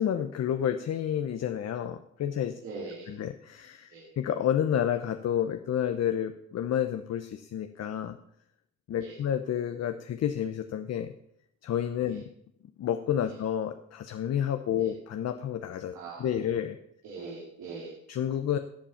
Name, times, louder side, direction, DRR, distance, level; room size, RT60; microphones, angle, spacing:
voice 1, 0.0-2.6 3.1-8.2 8.9-11.1 11.6-12.3 12.8-15.9 16.2-16.8 18.1-18.6, left 9 dB, 60° left, 8 dB, 0.8 m, -30 dB
voice 2, 2.6-3.2 3.9-4.1 9.0-9.2 12.1-12.2 14.8-14.9 15.9-16.4 17.0-18.0, right 4 dB, 80° right, -4 dB, 3.3 m, -42 dB
14.5 x 7.6 x 5.8 m, 0.74 s
cardioid pair, 90°, 30 cm